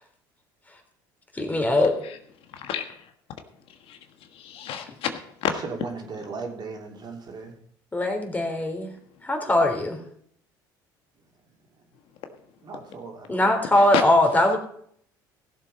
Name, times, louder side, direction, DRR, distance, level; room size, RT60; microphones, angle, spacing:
voice 1, 1.4-1.9 7.9-8.9 9.2-10.0 13.3-14.6, left 1 dB, 15° left, 3 dB, 3.3 m, -21 dB
voice 2, 2.5-2.9 3.9-4.0 4.3-5.5 13.7-14.0, left 9 dB, 65° left, 7 dB, 1.4 m, -29 dB
voice 3, 5.6-7.5 12.6-13.6, right 4 dB, 45° right, 1 dB, 3.4 m, -37 dB
16.0 x 7.3 x 5.3 m, 0.65 s
hypercardioid pair, 70°, 10 cm